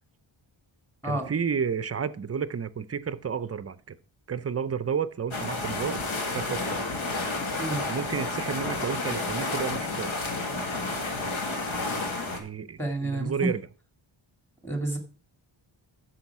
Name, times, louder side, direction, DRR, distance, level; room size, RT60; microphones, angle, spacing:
voice 1, 1.0-4.0 4.3-6.0 6.3-6.9 7.9-10.3 12.3-13.6, right 7 dB, 30° right, 15 dB, 0.5 m, -31 dB
sound 1, 5.3-12.4, left 3 dB, 80° left, 2.0 m, -31 dB
voice 2, 12.8-13.5 14.6-15.0, right 2 dB, 5° left, 4 dB, 2.3 m, -29 dB
9.7 x 6.9 x 4.7 m, 0.38 s
wide cardioid pair, 165°, 47 cm